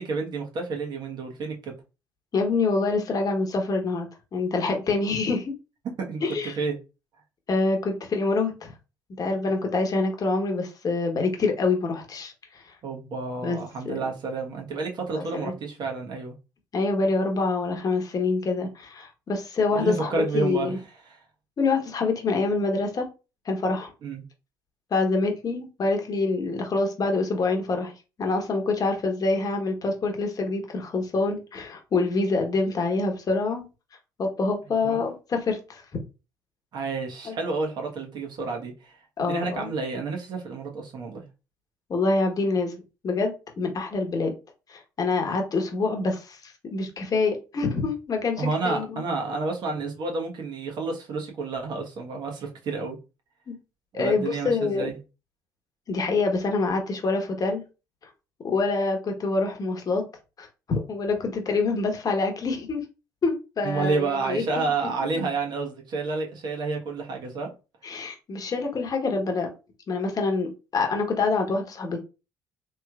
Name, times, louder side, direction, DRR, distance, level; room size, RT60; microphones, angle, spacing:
voice 1, 0.0-1.7 5.8-6.7 12.8-16.3 19.7-20.7 24.0-24.2 34.8-35.0 36.7-41.2 48.4-53.0 53.9-55.0 63.6-67.5, right 4 dB, 55° right, 1.3 m, -30 dB
voice 2, 2.3-5.5 6.2-6.6 7.5-8.7 9.2-12.3 12.7-12.8 13.4-13.6 13.8-13.9 15.2-15.5 16.7-20.8 21.6-23.1 23.4-23.9 24.9-27.9 28.2-33.6 34.2-35.8 37.2-37.3 39.2-39.7 41.9-42.7 43.0-44.3 44.7-49.0 53.5-53.6 53.9-54.9 55.9-57.6 58.4-60.0 60.4-62.8 63.2-64.7 67.8-69.5 69.9-72.0, left 3 dB, 45° left, 1.2 m, -26 dB
3.4 x 3.0 x 2.4 m
hypercardioid pair, 60°, 9 cm